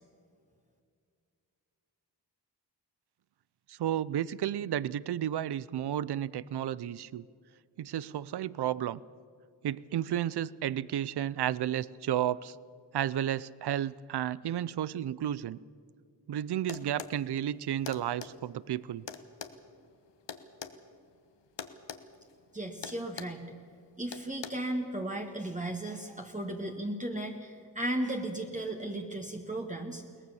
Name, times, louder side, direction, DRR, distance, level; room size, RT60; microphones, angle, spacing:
voice 1, 3.7-7.3 7.8-9.0 9.6-12.6 12.9-15.6 16.3-19.0, right 11 dB, 65° right, 20 dB, 0.6 m, -32 dB
sound 1, 16.7-17.2 17.9-18.3 19.1-20.8 21.6-22.0 22.3-22.5 22.8-23.4 24.1-24.5, left 7 dB, 80° left, 1.3 m, -41 dB
voice 2, 22.5-23.4 24.0-30.0, right 1 dB, 15° right, 2 dB, 1.6 m, -35 dB
22.0 x 18.5 x 7.0 m, 2.3 s
wide cardioid pair, 90°, 42 cm